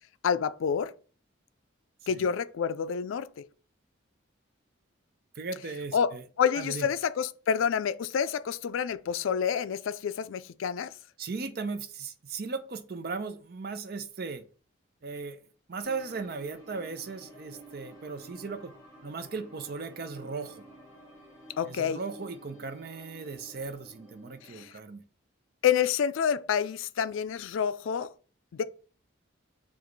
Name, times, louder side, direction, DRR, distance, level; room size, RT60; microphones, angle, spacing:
voice 1, 0.2-0.9 2.1-3.4 5.9-6.1 6.4-10.9 21.6-22.0 24.5-24.7 25.6-28.1 28.5-28.6, left 7 dB, 80° left, 0.3 m, -28 dB
voice 2, 2.0-2.3 5.3-6.2 6.5-6.9 11.2-14.4 15.0-15.4 15.7-18.7 19.0-20.6 21.6-25.0, right 4 dB, 50° right, 0.5 m, -37 dB
sound 1, 15.8-24.6, right 1 dB, 15° left, 2.3 m, -51 dB
7.1 x 2.4 x 3.1 m
head